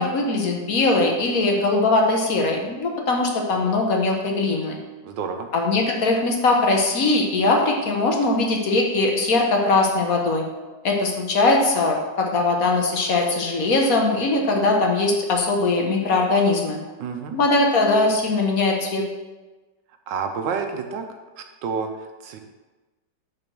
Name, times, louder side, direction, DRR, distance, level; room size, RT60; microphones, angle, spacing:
voice 1, 0.0-4.8 5.5-10.4 10.8-16.8 17.3-19.0, left 2 dB, 55° left, 1 dB, 1.4 m, -21 dB
voice 2, 5.0-5.5 17.0-17.4 20.1-21.1 21.4-22.4, right 5 dB, 85° right, 5 dB, 1.5 m, -29 dB
6.6 x 5.0 x 6.1 m, 1.2 s
omnidirectional pair, 1.9 m